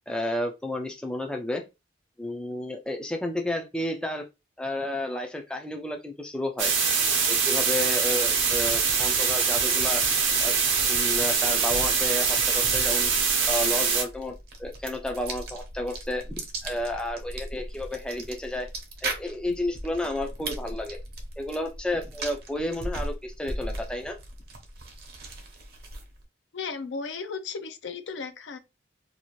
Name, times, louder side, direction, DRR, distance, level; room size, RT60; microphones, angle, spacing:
voice 1, 0.1-1.6 2.2-4.3 4.6-6.7 7.3-10.0 10.4-10.6 10.9-13.1 13.5-14.3 14.6-16.3 16.6-18.7 19.0-21.0 21.4-24.2, left 1 dB, 5° left, 0.3 m, -31 dB
sound 1, 6.6-14.0, right 5 dB, 85° right, 0.7 m, -23 dB
sound 2, 8.1-26.2, right 2 dB, 55° right, 0.7 m, -39 dB
voice 2, 26.5-28.6, left 5 dB, 75° left, 0.5 m, -35 dB
2.7 x 2.4 x 2.9 m
head